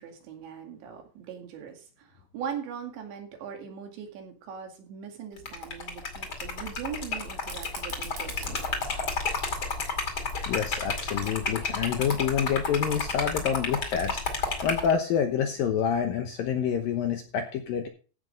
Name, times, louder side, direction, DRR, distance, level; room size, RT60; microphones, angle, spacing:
voice 1, 0.0-8.7, right 7 dB, 75° right, 3 dB, 4.4 m, -40 dB
Liquid, 5.4-14.9, left 4 dB, 40° left, 2.1 m, -31 dB
Fire, 7.4-12.4, right 5 dB, 55° right, 3.9 m, -47 dB
voice 2, 10.5-17.9, left 8 dB, 75° left, 5 dB, 2.2 m, -28 dB
15.0 x 5.9 x 5.2 m, 0.38 s
omnidirectional pair, 5.3 m